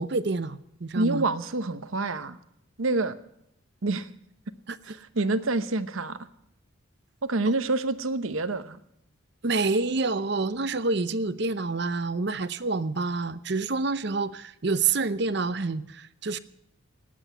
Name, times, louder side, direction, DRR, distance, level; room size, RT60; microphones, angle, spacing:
voice 1, 0.0-1.3 4.7-4.8 9.4-16.4, right 3 dB, 55° right, 14 dB, 0.7 m, -28 dB
voice 2, 0.9-2.4 2.8-3.1 3.8-4.1 4.8-6.3 7.2-8.8, right 2 dB, 80° right, 12 dB, 0.9 m, -27 dB
18.5 x 8.0 x 9.2 m, 0.77 s
head